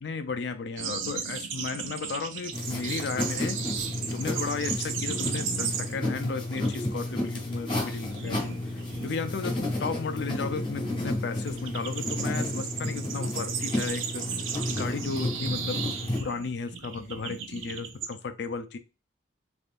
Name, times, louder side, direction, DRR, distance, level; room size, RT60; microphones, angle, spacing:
voice 1, 0.0-3.6 4.1-8.5 9.0-14.2 14.7-15.8 16.2-18.8, left 4 dB, 65° left, 0.4 m, -34 dB
sound 1, 0.8-6.2 6.4-6.8 7.1-18.1, right 7 dB, 85° right, 0.5 m, -36 dB
sound 2, 2.5-16.2, left 1 dB, 25° left, 0.7 m, -32 dB
3.5 x 2.6 x 2.4 m
head